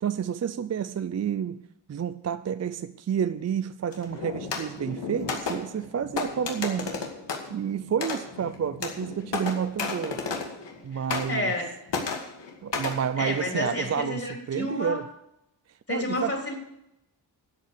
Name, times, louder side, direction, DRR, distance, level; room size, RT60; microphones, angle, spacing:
voice 1, 0.0-1.6 1.9-7.0 7.5-10.2 10.8-11.5 12.6-15.1 15.9-16.4, right 8 dB, 40° right, 12 dB, 0.4 m, -30 dB
sound 1, 3.9-10.8 11.1-11.6 11.9-13.0, left 4 dB, 75° left, 2.3 m, -33 dB
voice 2, 10.9-11.7 13.2-15.0 15.9-16.5, left 1 dB, 30° left, 1 dB, 3.6 m, -30 dB
12.0 x 8.4 x 6.7 m, 0.83 s
wide cardioid pair, 110°, 44 cm